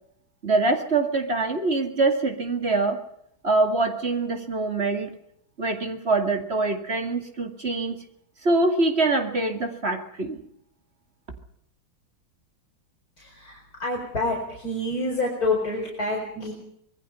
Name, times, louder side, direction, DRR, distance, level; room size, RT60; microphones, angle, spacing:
voice 1, 0.4-3.0 3.4-5.1 5.6-8.0 8.4-10.4, right 3 dB, 30° right, 5 dB, 2.4 m, -24 dB
voice 2, 13.2-16.5, left 2 dB, 45° left, -2 dB, 4.9 m, -28 dB
25.5 x 20.5 x 5.6 m, 0.71 s
omnidirectional pair, 2.3 m